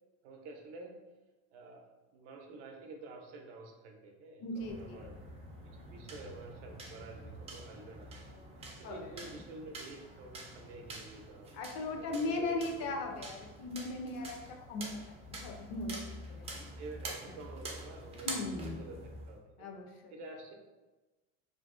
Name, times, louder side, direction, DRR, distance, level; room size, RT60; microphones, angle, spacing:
voice 1, 0.2-1.0 1.5-1.8 2.1-5.2 5.7-8.2 8.8-11.5 12.0-12.9 16.8-19.7 20.1-20.5, right 3 dB, 85° right, 2 dB, 0.6 m, -49 dB
voice 2, 4.4-5.1 8.8-9.4 11.5-16.1 16.4-16.5 18.3-18.9 19.6-20.1, left 2 dB, 50° left, 3 dB, 0.5 m, -38 dB
sound 1, 4.6-19.4, right 1 dB, 20° right, 0.3 m, -47 dB
2.5 x 2.0 x 2.4 m, 1.2 s
supercardioid pair, 125°, 33 cm